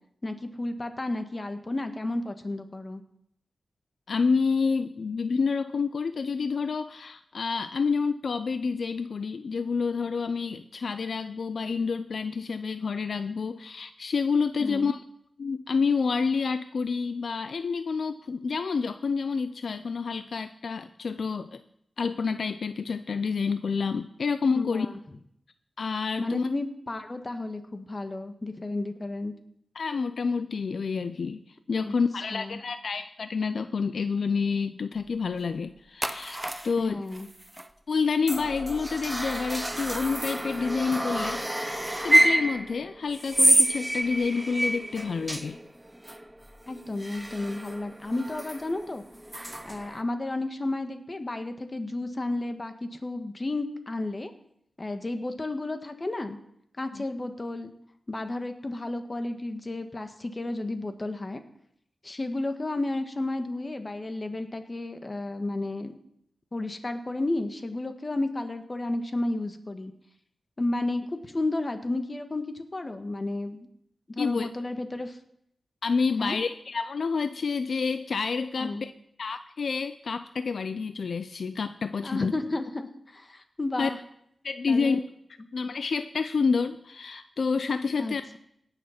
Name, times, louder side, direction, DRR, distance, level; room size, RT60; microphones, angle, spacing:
voice 1, 0.2-3.0 14.6-14.9 24.5-25.0 26.2-29.3 31.8-31.9 32.3-32.6 36.8-37.3 46.7-49.0 49.6-54.3 54.8-56.4 56.8-57.7 58.1-61.4 62.0-65.9 66.5-69.9 70.6-73.7 74.1-75.2 76.2-76.4 78.6-78.8 82.0-84.0 84.7-85.0 88.0-88.4, left 2 dB, 35° left, 7 dB, 1.5 m, -32 dB
voice 2, 4.1-15.0 15.4-21.6 22.0-24.9 25.8-26.5 29.7-37.0 37.9-45.6 56.9-57.0 74.2-74.5 75.8-78.9 79.2-82.3 83.8-83.9 84.4-85.0 85.5-88.3, left 5 dB, 75° left, 11 dB, 0.5 m, -28 dB
sound 1, 36.0-36.7 37.1-37.7 38.3-50.0, right 1 dB, 15° right, 0.9 m, -28 dB
17.5 x 6.6 x 5.8 m, 0.74 s
cardioid pair, 55°, 0 cm